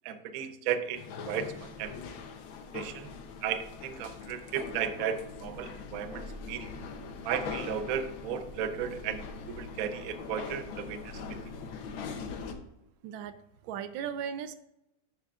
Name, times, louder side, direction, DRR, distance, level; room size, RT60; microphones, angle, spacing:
voice 1, 0.0-1.9 2.7-3.1 3.4-6.7 7.2-11.2, right 8 dB, 65° right, 10 dB, 0.9 m, -35 dB
sound 1, 0.9-12.5, left 5 dB, 85° left, 1.7 m, -42 dB
voice 2, 13.0-14.5, right 8 dB, 90° right, 12 dB, 1.4 m, -37 dB
10.5 x 8.2 x 2.4 m, 0.88 s
omnidirectional pair, 2.1 m